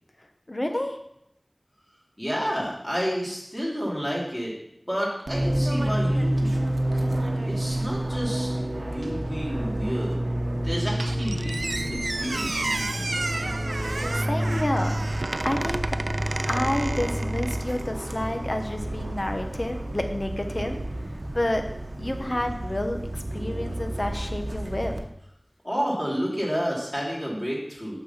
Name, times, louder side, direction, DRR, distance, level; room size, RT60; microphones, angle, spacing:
voice 1, 0.5-1.0 14.1-14.9 15.4-15.9 16.4-20.8 21.3-21.6 22.0-24.9, left 1 dB, 45° left, 5 dB, 1.1 m, -29 dB
voice 2, 2.2-4.5 4.9-6.6 7.4-10.2 10.5-13.3 25.6-28.0, equal, 10° left, -4 dB, 3.2 m, -30 dB
Fixed-wing aircraft airplane, 5.3-25.0, right 1 dB, 65° right, 0.9 m, -29 dB
Squeak, 11.0-17.9, right 2 dB, 90° right, 0.3 m, -32 dB
6.7 x 6.3 x 5.7 m, 0.78 s
wide cardioid pair, 40°, 0 cm